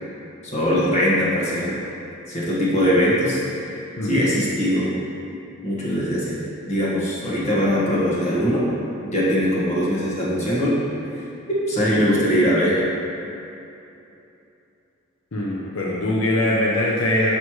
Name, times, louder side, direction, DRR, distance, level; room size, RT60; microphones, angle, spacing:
voice 1, 0.4-1.8 2.3-3.4 3.6-3.7 4.0-4.9 5.6-6.4 6.7-8.7 9.0-10.8 11.5-12.8, equal, 30° left, -8 dB, 1.5 m, -21 dB
voice 2, 15.3-17.3, left 1 dB, 70° left, -4 dB, 0.7 m, -22 dB
6.6 x 6.2 x 3.1 m, 2.8 s
head